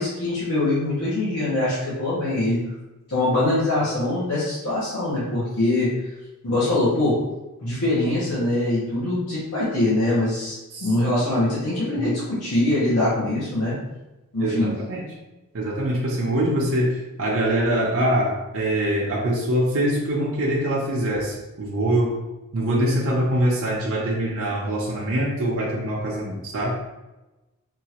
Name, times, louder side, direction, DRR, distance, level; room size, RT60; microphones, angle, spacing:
voice 1, 0.0-2.6 3.1-5.9 6.4-7.2 7.6-13.8 14.3-14.7, left 2 dB, 80° left, -9 dB, 1.0 m, -23 dB
voice 2, 14.4-15.0 15.5-22.2 22.5-26.7, right 1 dB, 60° right, -4 dB, 0.6 m, -24 dB
3.7 x 2.4 x 2.9 m, 1.0 s
head